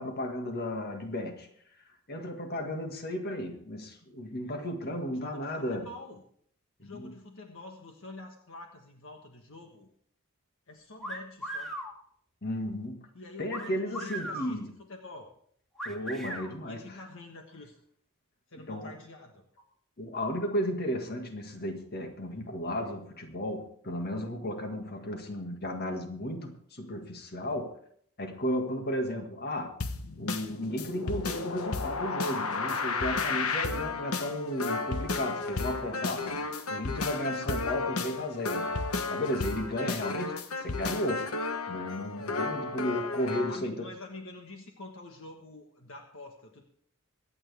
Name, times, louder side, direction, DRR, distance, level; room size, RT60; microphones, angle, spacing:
voice 1, 0.0-1.5 2.1-5.9 6.8-7.1 12.4-13.0 13.4-14.7 15.9-16.8 18.7-18.9 20.0-27.7 28.2-29.7 30.2-36.4 36.7-38.7 39.1-41.3 41.7-43.9, equal, 50° left, 4 dB, 1.9 m, -34 dB
voice 2, 5.1-6.2 6.8-9.9 10.7-11.7 13.1-15.3 16.7-17.8 18.5-19.6 43.5-46.6, left 2 dB, 65° left, 3 dB, 1.5 m, -47 dB
sound 1, 11.0-11.9 13.5-14.5 15.8-16.5, right 1 dB, ahead, 2.0 m, -37 dB
sound 2, 29.8-43.6, left 3 dB, 85° left, 1.2 m, -33 dB
24.0 x 9.0 x 3.5 m, 0.64 s
head